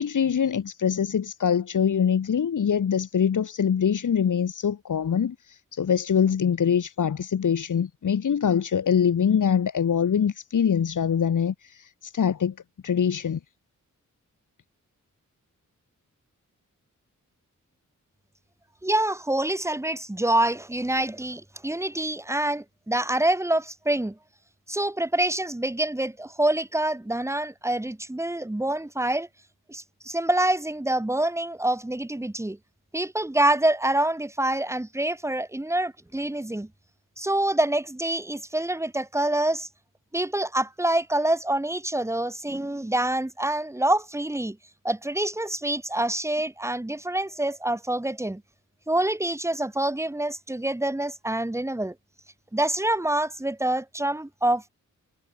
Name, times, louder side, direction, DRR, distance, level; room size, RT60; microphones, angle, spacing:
voice 1, 0.0-12.5 12.8-13.4, left 7 dB, 80° left, 3.3 m, -24 dB
voice 2, 18.8-24.2 24.7-29.3 29.7-32.6 32.9-36.7 37.2-39.7 40.1-44.6 44.8-48.4 48.9-51.9 52.5-54.7, right 1 dB, 10° right, 2.4 m, -26 dB
wide cardioid pair, 165°, 31 cm